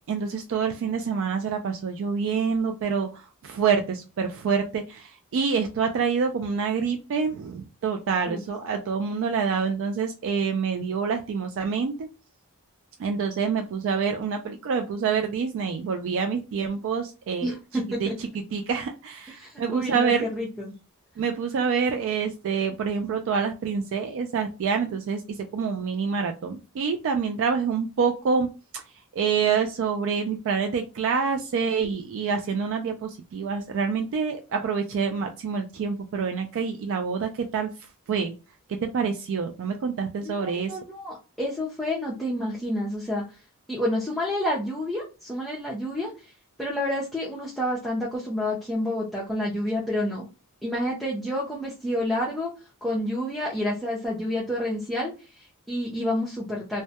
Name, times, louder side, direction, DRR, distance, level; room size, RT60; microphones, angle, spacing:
voice 1, 0.1-12.1 13.0-17.5 18.0-18.1 18.3-20.3 21.2-28.5 28.7-28.8 29.1-37.7 38.1-38.3 38.7-40.8, right 6 dB, 60° right, 5 dB, 0.3 m, -27 dB
voice 2, 17.4-18.1 19.4-20.7 40.2-43.2 43.7-46.3 46.6-50.2 50.6-52.5 52.8-56.8, left 1 dB, ahead, -6 dB, 0.5 m, -29 dB
2.2 x 2.1 x 2.7 m, 0.32 s
head